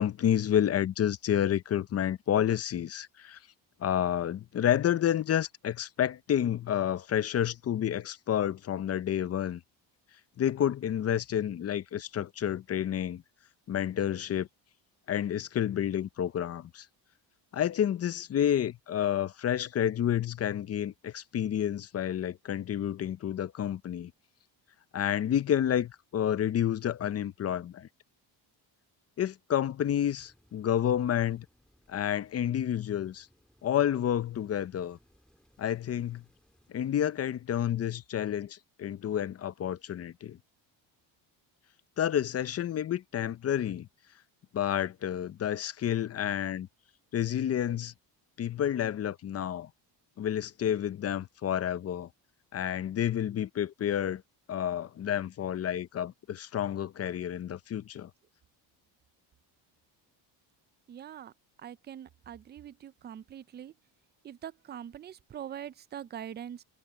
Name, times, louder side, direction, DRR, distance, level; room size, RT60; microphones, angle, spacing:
voice 1, 0.0-3.4 3.8-9.6 10.4-13.2 13.7-14.5 15.1-16.8 17.5-24.1 24.9-27.9 29.2-31.5 31.9-33.3 33.6-35.0 35.6-36.2 36.7-40.4 42.0-43.9 44.5-46.7 47.1-47.9 48.4-49.7 50.2-52.1 52.5-54.2 54.5-58.1, left 10 dB, 35° left, 0.6 m, -29 dB
Rain, 30.1-36.7, equal, ahead, 4.0 m, -67 dB
voice 2, 60.9-61.3 61.6-63.7 64.2-66.6, right 9 dB, 25° right, 0.4 m, -43 dB
cardioid pair, 135°, 45 cm